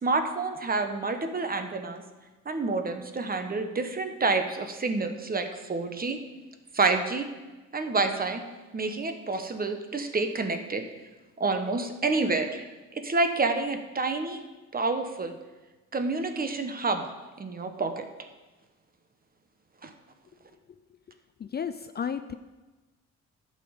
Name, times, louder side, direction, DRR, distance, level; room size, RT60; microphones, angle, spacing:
voice 1, 0.0-2.0 2.4-6.2 6.7-7.3 7.7-8.4 8.7-10.9 11.4-14.4 14.7-15.3 15.9-17.0 17.4-18.1 19.8-19.9, right 3 dB, 30° right, 7 dB, 1.2 m, -28 dB
voice 2, 21.4-22.3, left 7 dB, 35° left, 10 dB, 0.5 m, -33 dB
11.5 x 6.9 x 5.2 m, 1.2 s
cardioid pair, 90°, 30 cm